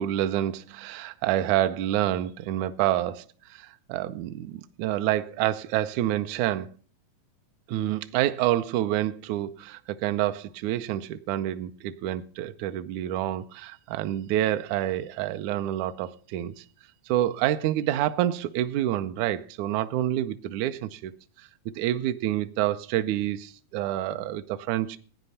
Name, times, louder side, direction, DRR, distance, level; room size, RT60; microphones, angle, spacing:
voice 1, 0.0-3.2 3.5-6.7 7.7-16.5 17.1-21.1 21.8-25.0, right 13 dB, 85° right, 1.7 m, -28 dB
15.5 x 9.5 x 5.6 m
omnidirectional pair, 4.3 m